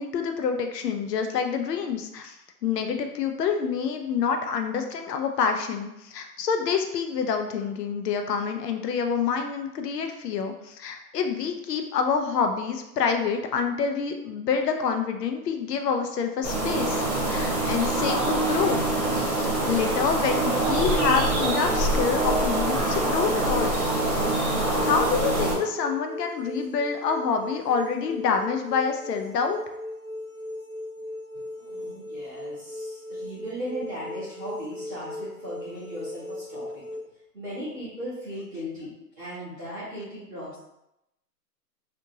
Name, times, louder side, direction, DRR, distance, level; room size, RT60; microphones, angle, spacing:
voice 1, 0.0-2.4 2.6-18.8 19.7-23.7 24.7-29.6, left 6 dB, 75° left, 5 dB, 0.6 m, -27 dB
sound 1, 16.4-25.5, right 2 dB, 45° right, 1.0 m, -25 dB
sound 2, 21.1-37.0, left 1 dB, 60° left, 1.0 m, -38 dB
voice 2, 31.6-36.8 37.3-40.6, equal, 10° right, -14 dB, 0.6 m, -37 dB
2.8 x 2.5 x 2.7 m, 0.86 s
hypercardioid pair, 160°, 49 cm